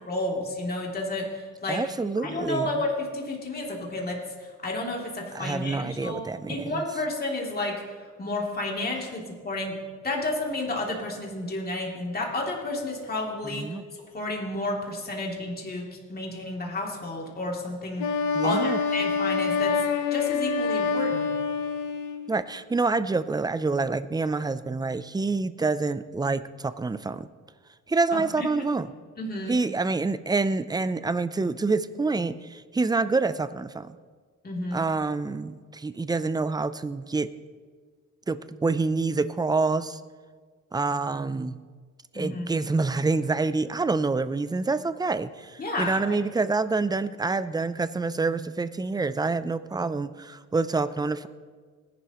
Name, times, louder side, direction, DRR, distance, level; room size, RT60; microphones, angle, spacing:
voice 1, 0.0-1.8 2.2-9.8 10.0-13.8 14.1-19.8 20.1-21.3 28.1-28.5 29.2-29.5 34.4-34.8 42.1-42.5 45.6-46.2, left 2 dB, 30° left, -1 dB, 2.9 m, -31 dB
voice 2, 1.7-2.7 5.3-6.8 13.5-13.8 18.3-18.8 22.3-27.3 27.9-28.9 29.5-34.0 34.7-37.3 38.3-40.0 40.7-41.5 42.1-51.3, right 3 dB, 15° right, 13 dB, 0.5 m, -27 dB
Wind instrument woodwind instrument, 18.0-22.3, left 5 dB, 80° left, 1.1 m, -26 dB
19.5 x 11.5 x 3.1 m, 1.5 s
cardioid pair, 90°, 30 cm